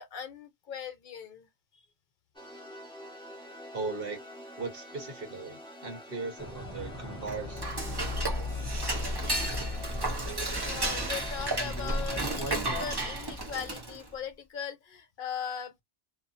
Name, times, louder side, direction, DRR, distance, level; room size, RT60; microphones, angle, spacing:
voice 1, 0.0-1.5 1.7-1.8 5.9-6.0 10.6-15.8, left 7 dB, 55° left, 0.9 m, -39 dB
sound 1, 2.3-12.7, equal, 5° left, 1.0 m, -47 dB
voice 2, 3.7-4.2 4.6-7.7, right 4 dB, 55° right, 1.2 m, -38 dB
sound 2, 6.4-13.5, right 1 dB, 20° left, 0.4 m, -42 dB
Dishes pots and pans / Cutlery silverware, 7.2-14.1, right 1 dB, 25° right, 0.9 m, -32 dB
2.6 x 2.4 x 2.5 m
omnidirectional pair, 1.1 m